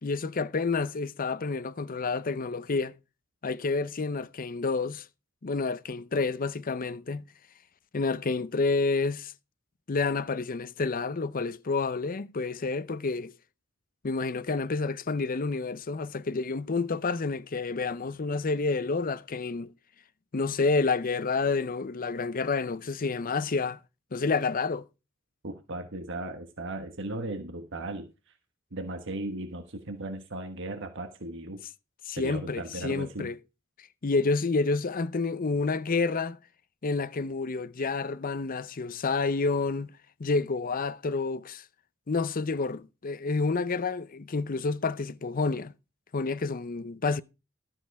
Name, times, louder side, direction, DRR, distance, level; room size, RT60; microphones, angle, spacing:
voice 1, 0.0-3.0 3.4-5.1 5.4-7.3 7.9-9.3 9.9-13.3 14.0-19.7 20.3-23.8 24.1-24.9 32.1-33.4 34.0-36.4 36.8-39.9 40.2-41.6 42.1-45.7 46.1-47.2, left 4 dB, 45° left, 0.6 m, -29 dB
voice 2, 25.4-28.1 28.7-31.6 32.2-33.3, right 2 dB, 65° right, 1.4 m, -36 dB
12.5 x 7.5 x 4.7 m
head